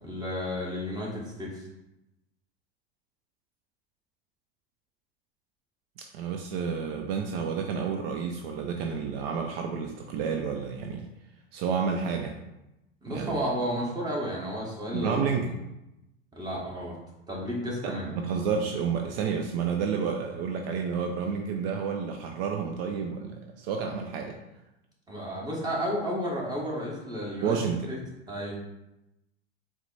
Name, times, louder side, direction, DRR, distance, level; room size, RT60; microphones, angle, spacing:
voice 1, 0.0-1.7 13.0-15.5 16.3-17.0 17.3-18.1 25.1-27.6 27.9-28.0 28.3-28.5, equal, 10° right, -4 dB, 1.5 m, -32 dB
voice 2, 6.1-11.1 11.5-12.3 13.1-13.5 14.9-15.6 17.8-24.3 27.4-27.9, right 6 dB, 60° right, 3 dB, 0.5 m, -30 dB
4.4 x 2.1 x 4.0 m, 0.92 s
hypercardioid pair, 95°, 32 cm